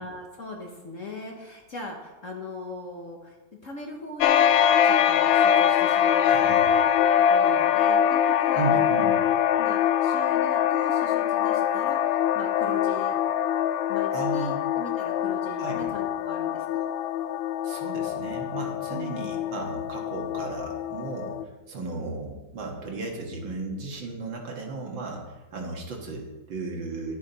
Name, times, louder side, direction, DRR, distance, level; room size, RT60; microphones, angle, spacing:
voice 1, 0.0-3.4 3.6-4.5 4.8-6.4 6.7-8.8 9.1-9.2 9.6-13.1 13.9-16.8 18.9-19.4, left 2 dB, 45° left, 0 dB, 1.4 m, -40 dB
sound 1, 4.2-21.4, left 9 dB, 80° left, 1.3 m, -23 dB
voice 2, 6.2-6.7 8.6-9.2 14.1-14.6 15.6-15.9 17.6-21.4 21.7-27.1, right 3 dB, 70° right, 0 dB, 2.3 m, -35 dB
11.5 x 8.5 x 4.1 m, 1.1 s
omnidirectional pair, 2.2 m